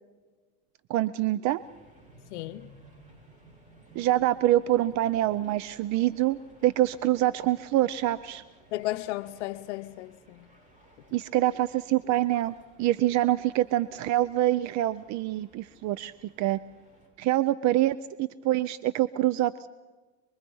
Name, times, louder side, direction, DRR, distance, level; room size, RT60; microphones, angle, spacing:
voice 1, 0.9-1.6 3.9-8.4 11.1-16.1 16.4-16.6 17.2-19.7, right 14 dB, 55° right, 0.7 m, -25 dB
sound 1, 1.5-17.1, right 1 dB, 20° right, 7.8 m, -57 dB
voice 2, 2.3-2.7 8.7-10.5, left 17 dB, 85° left, 0.7 m, -34 dB
26.5 x 22.0 x 5.5 m
supercardioid pair, 105°, 34 cm